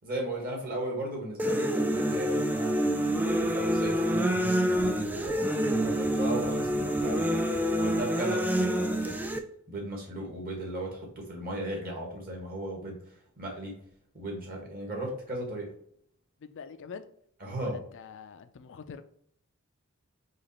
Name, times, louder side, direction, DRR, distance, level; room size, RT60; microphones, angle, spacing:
voice 1, 0.0-9.2 9.7-13.0 13.4-13.7 14.1-15.7 17.4-17.8, right 1 dB, 40° right, 1.6 m, -36 dB
sound 1, 1.4-9.4, equal, 5° right, 0.3 m, -27 dB
voice 2, 16.4-17.1 17.6-19.0, left 6 dB, 60° left, 0.4 m, -45 dB
4.9 x 2.5 x 4.2 m
head